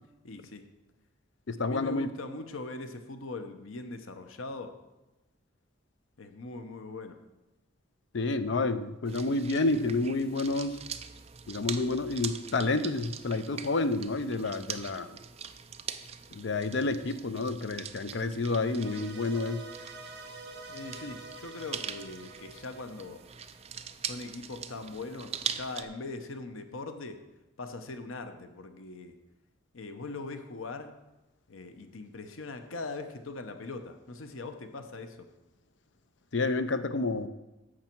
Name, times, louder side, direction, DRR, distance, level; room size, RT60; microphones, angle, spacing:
voice 1, 0.2-0.7 1.6-4.7 6.2-7.2 20.7-23.2 24.0-27.2 27.6-29.1 29.7-30.9 31.5-35.3, left 3 dB, 90° left, 7 dB, 0.9 m, -41 dB
voice 2, 1.5-2.1 8.1-10.8 11.5-15.2 16.3-19.6 36.3-37.3, left 3 dB, 60° left, 11 dB, 0.6 m, -29 dB
sound 1, 9.1-25.8, right 8 dB, 30° right, 0.4 m, -42 dB
sound 2, 18.6-23.8, right 2 dB, 55° right, 1.5 m, -47 dB
11.0 x 7.4 x 4.5 m, 1.0 s
head